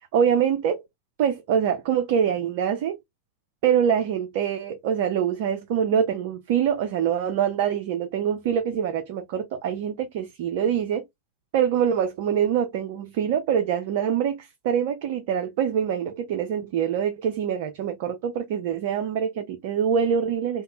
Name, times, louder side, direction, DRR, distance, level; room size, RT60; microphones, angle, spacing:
voice 1, 0.1-0.8 1.2-3.0 3.6-11.0 11.5-20.6, right 8 dB, 50° right, 0.4 m, -24 dB
2.6 x 2.2 x 2.8 m
figure-of-eight pair, 90°, 0 cm